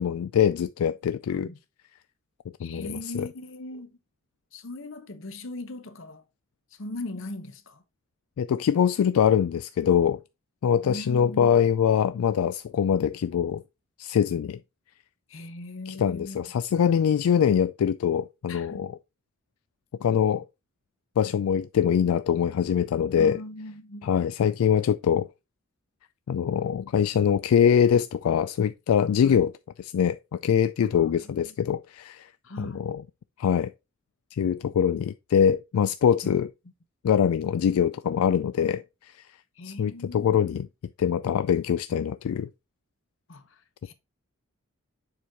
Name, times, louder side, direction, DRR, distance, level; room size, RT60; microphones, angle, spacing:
voice 1, 0.0-1.5 2.6-3.3 8.4-10.2 10.6-13.6 14.0-14.6 15.9-19.0 20.0-20.4 21.2-23.4 24.0-25.3 26.3-29.5 29.8-32.3 32.6-33.0 33.4-33.7 34.3-36.5 37.0-39.3 39.6-40.7 41.0-42.5, left 8 dB, 80° left, 0.3 m, -23 dB
voice 2, 2.6-4.0 4.5-6.2 6.8-7.8 10.8-11.6 15.3-16.5 18.5-18.9 23.2-24.1 29.2-29.4 30.9-31.6 32.4-32.9 36.2-36.4 39.6-40.6 43.3-43.9, left 2 dB, 60° left, 0.9 m, -39 dB
7.0 x 4.7 x 3.6 m
head